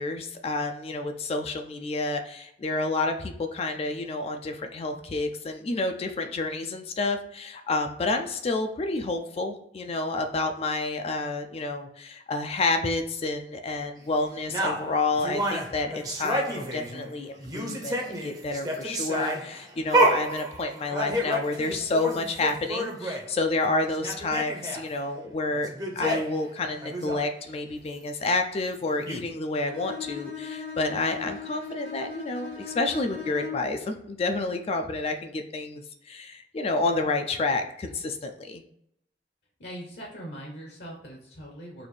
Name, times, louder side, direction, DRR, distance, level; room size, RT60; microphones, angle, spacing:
voice 1, 0.0-25.7 26.0-38.6, left 3 dB, 35° left, 5 dB, 0.3 m, -29 dB
sound 1, 14.5-17.1 17.4-23.3 23.6-23.7 23.9-24.8 25.5-26.4 26.8-27.2 28.7-28.8 29.1-29.2, right 1 dB, 20° right, 0.6 m, -29 dB
Bowed string instrument, 29.7-33.8, left 6 dB, 65° right, 1.3 m, -38 dB
voice 2, 39.6-41.9, equal, 65° left, 0 dB, 0.9 m, -41 dB
4.0 x 2.5 x 3.2 m, 0.75 s
head